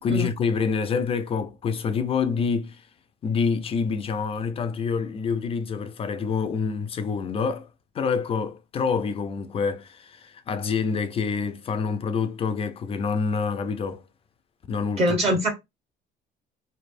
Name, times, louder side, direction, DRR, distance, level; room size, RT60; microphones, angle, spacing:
voice 1, 0.0-2.9 3.2-7.7 7.9-14.0 14.7-15.5, left 5 dB, 35° left, 0.4 m, -27 dB
voice 2, 15.0-15.5, equal, 35° right, 1.1 m, -22 dB
4.6 x 3.3 x 2.5 m
cardioid pair, 160°, 18 cm